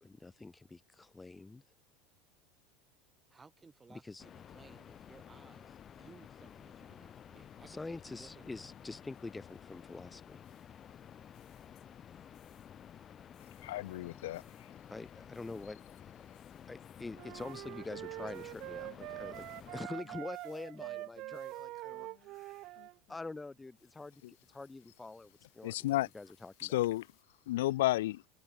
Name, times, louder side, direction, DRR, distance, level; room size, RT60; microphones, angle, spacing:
voice 1, 0.0-1.6 3.9-4.2 7.7-10.4 14.9-15.8 16.7-22.6 23.1-24.2 24.5-26.8, left 3 dB, 15° left, 1.9 m, -46 dB
voice 2, 3.3-7.7 8.1-8.7, right 4 dB, 20° right, 4.1 m, -59 dB
sound 1, 4.2-19.9, left 9 dB, 35° left, 2.6 m, -53 dB
sound 2, 10.4-12.1 12.3-12.9 13.3-23.4 23.8-27.2, left 22 dB, 60° left, 4.8 m, -66 dB
voice 3, 13.6-14.4 25.6-26.1 26.6-27.1 27.5-28.2, left 16 dB, 80° left, 0.4 m, -32 dB
sound 3, 17.2-23.0, right 18 dB, 55° right, 0.4 m, -44 dB
hypercardioid pair, 95°, 0 cm